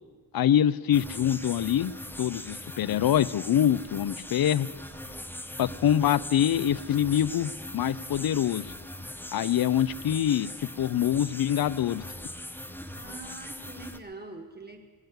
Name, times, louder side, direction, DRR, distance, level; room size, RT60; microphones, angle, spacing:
voice 1, 0.3-4.7 5.6-8.7 9.3-10.5 10.8-12.0, left 10 dB, 70° left, 20 dB, 0.5 m, -25 dB
sound 1, 0.9-14.0, left 1 dB, 5° left, 0.6 m, -41 dB
voice 2, 13.0-14.8, right 3 dB, 25° right, 5 dB, 1.7 m, -43 dB
19.0 x 8.0 x 9.5 m, 1.5 s
wide cardioid pair, 170°, 37 cm